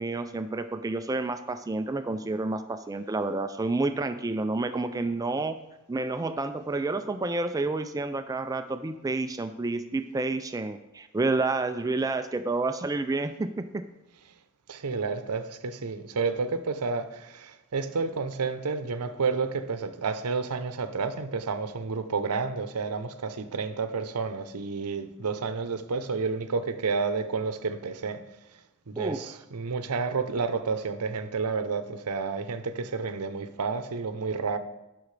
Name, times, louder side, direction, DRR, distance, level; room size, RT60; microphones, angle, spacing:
voice 1, 0.0-5.6 5.9-13.8 29.0-29.3, right 3 dB, 15° right, 9 dB, 0.3 m, -29 dB
voice 2, 14.7-28.2 28.9-34.6, right 4 dB, 90° right, 10 dB, 0.7 m, -30 dB
17.0 x 6.0 x 3.2 m, 0.97 s
head